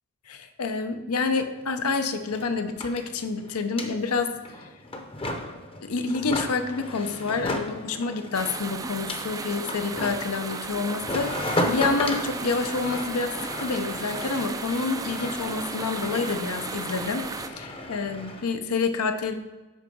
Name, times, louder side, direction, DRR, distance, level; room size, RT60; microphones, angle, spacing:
voice 1, 0.3-4.3 5.8-19.3, left 4 dB, 80° left, 8 dB, 0.7 m, -28 dB
sound 1, 1.6-1.7 1.9-18.5, left 1 dB, 25° left, 0.7 m, -34 dB
sound 2, 8.3-17.5, right 4 dB, 15° right, 0.3 m, -35 dB
6.4 x 4.7 x 5.3 m, 1.1 s
head